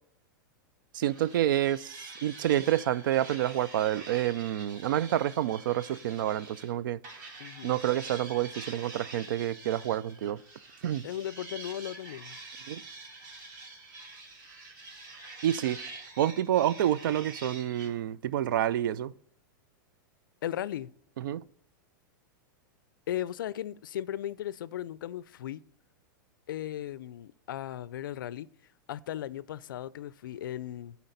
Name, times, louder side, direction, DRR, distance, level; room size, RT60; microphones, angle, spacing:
voice 1, 0.9-7.0 7.6-10.4 10.8-11.0 12.7-12.8 15.4-15.8 16.2-19.1 21.2-21.4, right 12 dB, 75° right, 0.4 m, -28 dB
sound 1, 1.0-6.7 7.0-17.9, right 3 dB, 60° right, 2.6 m, -46 dB
voice 2, 7.4-7.7 11.0-12.4 20.4-20.9 23.1-25.6 26.5-28.5 28.9-31.0, left 11 dB, 85° left, 0.4 m, -36 dB
12.5 x 4.2 x 3.9 m
hypercardioid pair, 130°, 11 cm